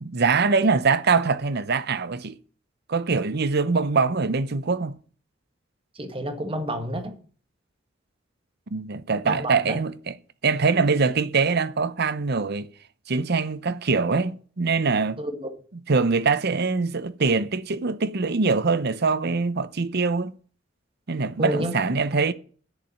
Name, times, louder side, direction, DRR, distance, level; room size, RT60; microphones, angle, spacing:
voice 1, 0.0-2.4 2.9-5.0 8.7-10.2 10.4-12.7 13.1-15.2 15.7-20.3 21.1-22.3, right 4 dB, 55° right, 0.8 m, -23 dB
voice 2, 6.0-7.1 9.2-9.7 15.2-15.3 21.4-21.7, equal, 30° right, 1.6 m, -29 dB
8.3 x 7.0 x 8.4 m
head